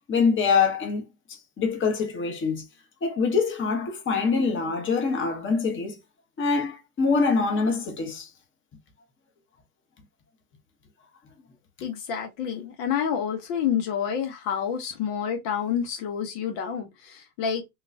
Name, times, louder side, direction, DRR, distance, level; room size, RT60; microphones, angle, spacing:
voice 1, 0.1-1.0 1.6-2.6 3.0-6.0 6.4-8.3, left 5 dB, 25° left, 1.1 m, -24 dB
voice 2, 11.8-17.6, left 8 dB, 55° left, 1.0 m, -28 dB
3.7 x 2.4 x 2.5 m
hypercardioid pair, 95°, 47 cm